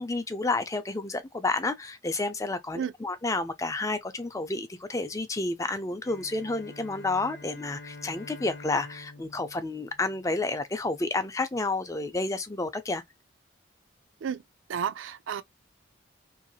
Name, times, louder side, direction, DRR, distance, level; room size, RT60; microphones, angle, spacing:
voice 1, 0.0-13.0, left 2 dB, 15° left, 0.4 m, -30 dB
Bowed string instrument, 6.0-10.7, left 3 dB, 65° left, 0.7 m, -47 dB
voice 2, 14.7-15.4, right 7 dB, 90° right, 0.4 m, -31 dB
2.8 x 2.7 x 2.3 m
head